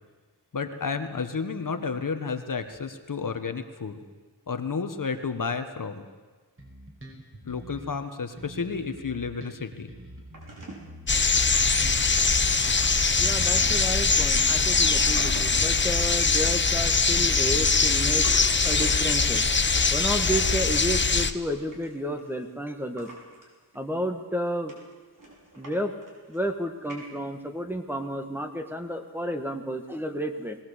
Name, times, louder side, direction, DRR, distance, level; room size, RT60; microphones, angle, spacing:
voice 1, 0.5-4.0 4.5-6.0 7.4-9.9, left 5 dB, 50° left, 7 dB, 1.4 m, -31 dB
Bass guitar, 6.6-8.0 8.4-12.8 13.2-16.2, right 1 dB, 30° right, 5.0 m, -45 dB
sound 1, 10.3-10.9 11.2-11.6 12.0-13.1 13.6-15.6 16.0-16.3 17.1-19.2 19.7-22.5 23.0-23.4 23.7-23.8 24.3-24.4 24.7-25.8 26.0-26.5 26.9-27.4, right 1 dB, 50° right, 6.1 m, -45 dB
sound 2, 11.1-21.3, left 4 dB, 30° left, 0.9 m, -22 dB
voice 2, 13.2-18.3 18.6-19.4 19.9-23.1 23.7-24.7 25.6-25.9 26.3-30.6, equal, 5° right, 5 dB, 1.7 m, -31 dB
21.0 x 18.0 x 8.2 m, 1.4 s
wide cardioid pair, 110°, 40 cm